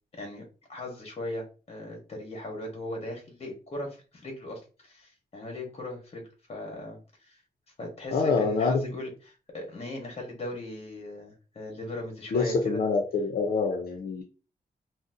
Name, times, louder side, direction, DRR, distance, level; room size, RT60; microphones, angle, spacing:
voice 1, 0.1-0.4 0.7-7.4 7.8-12.8, left 1 dB, 40° left, 1 dB, 1.2 m, -38 dB
voice 2, 8.1-8.8 12.3-14.2, left 4 dB, 75° left, 2 dB, 0.6 m, -26 dB
3.9 x 2.1 x 2.5 m, 0.34 s
wide cardioid pair, 155°, 15 cm